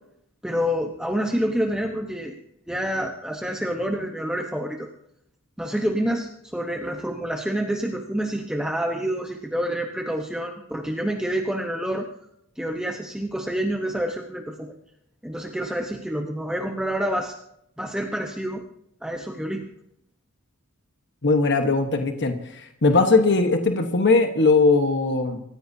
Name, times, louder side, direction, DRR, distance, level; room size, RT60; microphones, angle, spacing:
voice 1, 0.4-2.4 2.7-4.9 5.6-12.1 12.6-14.7 15.2-17.3 17.8-18.6 19.0-19.6, equal, 5° right, 1 dB, 1.0 m, -27 dB
voice 2, 21.2-22.3 22.8-25.4, left 3 dB, 55° left, 6 dB, 1.2 m, -19 dB
26.5 x 15.0 x 2.8 m, 0.75 s
head